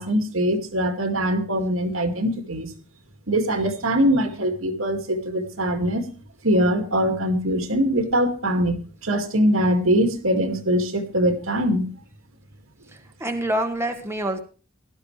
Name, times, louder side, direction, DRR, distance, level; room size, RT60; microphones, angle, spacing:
voice 1, 0.0-2.7 3.3-6.1 6.4-11.8, equal, 90° right, 6 dB, 2.1 m, -22 dB
voice 2, 12.9-14.4, right 1 dB, 15° right, 4 dB, 1.4 m, -27 dB
17.0 x 12.5 x 3.3 m, 0.37 s
head